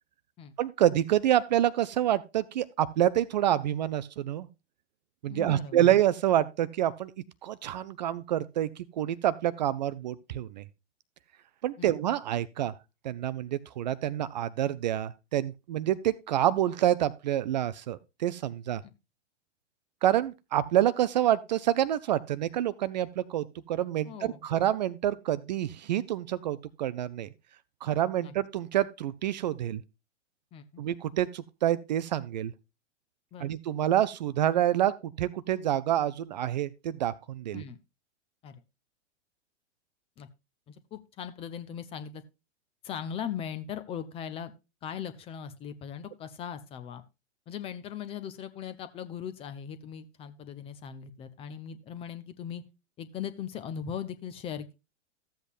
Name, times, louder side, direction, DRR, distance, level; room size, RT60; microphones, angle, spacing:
voice 1, 0.6-4.5 5.2-7.1 7.4-10.6 11.6-12.7 13.0-18.8 20.0-27.3 27.8-29.8 30.8-32.5 33.4-37.6, right 12 dB, 40° right, 0.5 m, -27 dB
voice 2, 5.3-5.8 11.8-11.9 18.8-18.9 24.0-24.4 28.2-28.3 30.5-30.8 33.3-33.5 37.5-37.8 38.4-38.6 40.2-40.3 40.7-42.2 42.8-44.5 44.8-47.0 47.5-52.6 53.0-54.7, left 8 dB, 15° left, 0.6 m, -39 dB
14.0 x 8.0 x 2.4 m
figure-of-eight pair, 105°, 35 cm